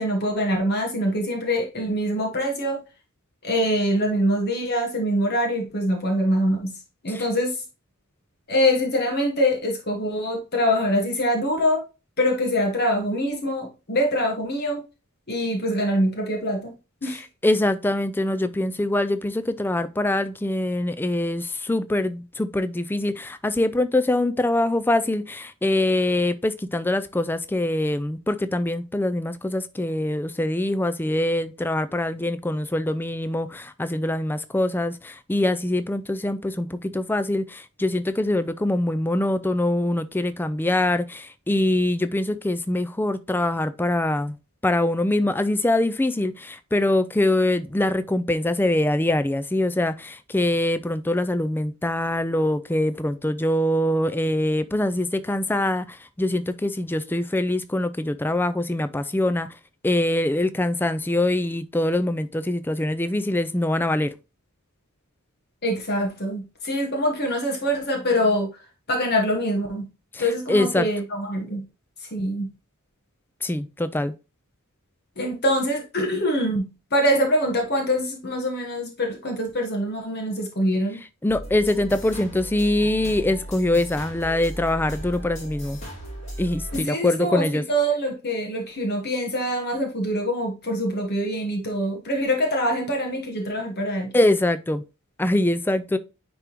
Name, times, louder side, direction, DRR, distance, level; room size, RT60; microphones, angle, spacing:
voice 1, 0.0-2.8 3.4-6.8 7.0-7.6 8.5-11.8 12.2-14.8 15.3-16.7 17.0-17.2 65.6-68.5 68.9-69.9 70.2-71.6 72.0-72.5 75.2-81.0 86.7-94.1, equal, 45° left, 1.2 m, -24 dB
voice 2, 17.4-44.4 44.6-55.9 56.2-59.5 59.8-64.1 70.1-70.2 70.5-70.8 73.4-74.1 81.2-85.8 86.4-87.6 94.1-94.8 95.2-96.0, left 1 dB, 10° left, 0.3 m, -23 dB
sound 1, 81.3-86.8, right 1 dB, 30° left, 2.2 m, -36 dB
9.6 x 3.4 x 3.0 m
head